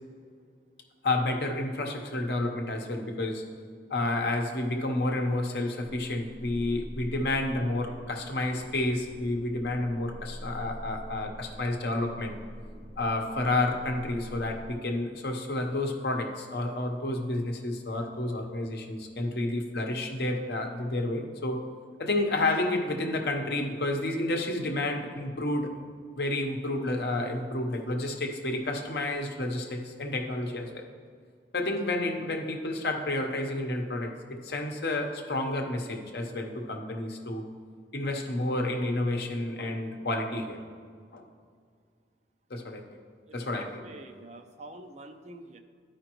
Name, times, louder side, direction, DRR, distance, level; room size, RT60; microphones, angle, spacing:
voice 1, 1.0-3.5 3.9-12.3 13.0-21.6 22.0-25.7 26.2-30.8 31.5-37.4 37.9-40.6 41.1-41.2 42.5-42.8 43.3-43.8, left 2 dB, 65° left, 3 dB, 0.9 m, -30 dB
sound 1, 5.8-14.7, equal, 10° left, 1.2 m, -45 dB
voice 2, 43.3-45.6, right 2 dB, 40° right, 6 dB, 0.5 m, -46 dB
13.0 x 5.1 x 3.0 m, 2.1 s
head